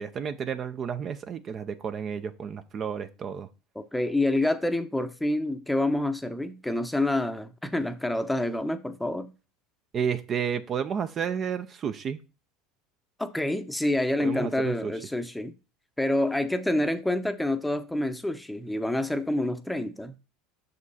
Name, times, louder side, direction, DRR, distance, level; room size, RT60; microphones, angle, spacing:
voice 1, 0.0-3.5 9.9-12.2 14.2-14.9, right 7 dB, 40° right, 0.6 m, -31 dB
voice 2, 3.8-9.3 13.2-15.5 16.0-20.1, left 1 dB, 5° left, 0.8 m, -27 dB
6.3 x 5.3 x 4.1 m
supercardioid pair, 105°, 0 cm